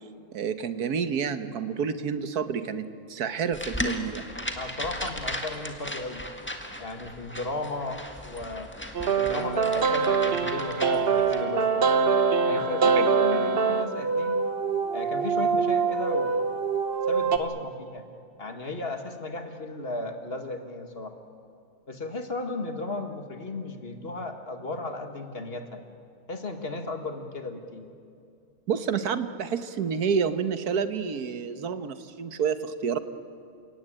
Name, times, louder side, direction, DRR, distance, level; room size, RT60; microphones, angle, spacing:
voice 1, 0.3-4.2 28.7-33.0, right 6 dB, 80° right, 11 dB, 1.6 m, -29 dB
sound 1, 3.5-11.4, left 1 dB, 5° left, 1.7 m, -36 dB
voice 2, 4.6-6.2 6.8-8.7 9.2-11.8 12.4-14.4 14.9-16.4 17.1-18.0 18.4-21.1 21.9-25.8 26.3-27.9, left 2 dB, 40° left, 6 dB, 1.9 m, -35 dB
sound 2, 8.9-17.4, right 5 dB, 45° right, 1.2 m, -24 dB
29.5 x 17.5 x 8.9 m, 2.4 s
omnidirectional pair, 1.6 m